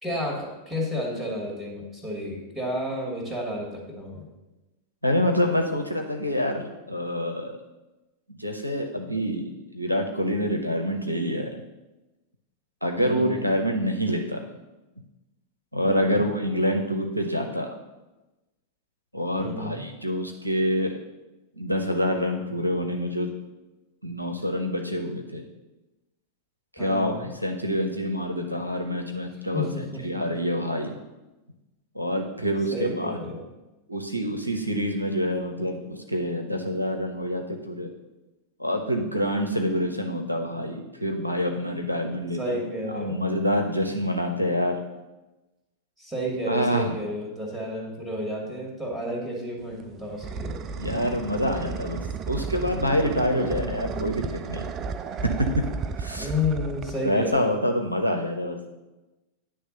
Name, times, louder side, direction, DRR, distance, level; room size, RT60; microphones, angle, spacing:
voice 1, 0.0-4.3 13.0-13.5 15.8-16.2 19.4-19.9 26.8-27.3 29.5-30.0 32.7-33.4 42.3-43.2 46.0-50.7 53.3-54.2 56.2-57.5, left 1 dB, 10° right, -2 dB, 2.4 m, -31 dB
voice 2, 5.0-7.5 8.4-11.6 12.8-14.4 15.7-17.7 19.1-21.0 21.6-23.3 24.0-25.4 26.8-29.7 30.0-30.9 31.9-33.2 33.9-37.9 38.6-42.6 42.9-44.8 46.5-46.9 50.8-54.7 55.4-55.5 56.0-56.3 57.0-58.6, equal, 85° right, 4 dB, 0.7 m, -26 dB
sound 1, 49.6-57.6, right 5 dB, 30° right, 0.4 m, -34 dB
9.4 x 3.3 x 6.5 m, 1.1 s
figure-of-eight pair, 90°, 0 cm